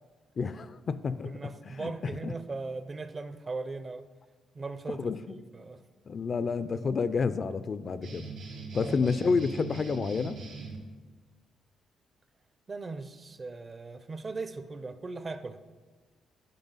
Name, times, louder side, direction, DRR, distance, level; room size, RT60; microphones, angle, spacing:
voice 1, 0.4-1.3 1.7-2.3 4.9-5.4 6.1-8.3 8.7-10.4, left 5 dB, 45° left, 0.3 m, -30 dB
voice 2, 1.2-4.1 4.5-5.8 8.7-9.1 12.7-15.6, right 3 dB, 35° right, 0.5 m, -39 dB
sound 1, 8.0-10.8, right 4 dB, 80° right, 2.4 m, -41 dB
10.5 x 5.3 x 4.0 m
cardioid pair, 90°, 0 cm